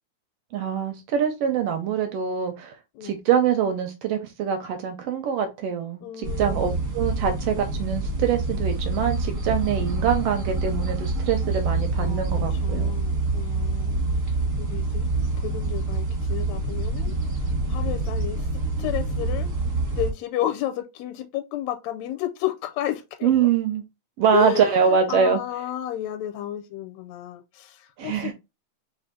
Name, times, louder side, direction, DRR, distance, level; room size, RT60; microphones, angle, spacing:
voice 1, 0.5-2.7 3.0-12.9 23.2-23.8 24.2-25.4 28.0-28.3, right 7 dB, 75° right, 1.5 m, -24 dB
voice 2, 6.0-6.8 12.0-12.3 12.5-14.0 14.6-15.1 15.4-17.1 17.7-18.5 18.8-19.5 19.9-23.5 24.3-28.3, left 12 dB, 80° left, 1.8 m, -32 dB
sound 1, 6.2-20.1, right 2 dB, 50° right, 0.9 m, -26 dB
4.5 x 2.7 x 3.7 m
omnidirectional pair, 3.4 m